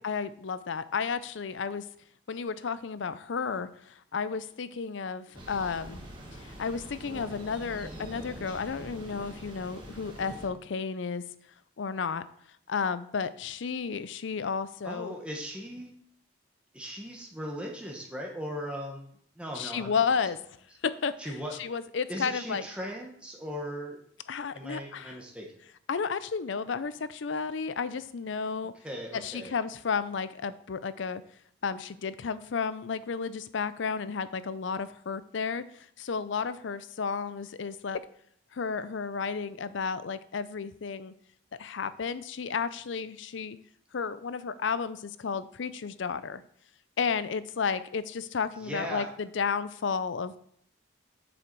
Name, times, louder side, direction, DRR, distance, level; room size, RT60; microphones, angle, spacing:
voice 1, 0.0-1.9 2.3-6.0 6.4-11.2 11.8-12.2 12.7-15.1 19.5-20.4 20.8-21.3 21.6-22.6 24.3-25.2 25.9-28.7 29.1-31.2 31.6-38.0 38.5-41.1 41.5-43.6 43.9-46.4 47.0-50.4, left 5 dB, 70° left, 15 dB, 0.5 m, -32 dB
Thunder, 5.3-10.5, equal, 25° right, 1.8 m, -44 dB
voice 2, 14.8-15.9 16.7-19.9 21.2-21.6 22.1-24.0 24.5-25.5 28.8-29.6 48.6-49.1, equal, 5° right, -1 dB, 1.0 m, -38 dB
7.7 x 6.4 x 4.6 m, 0.65 s
head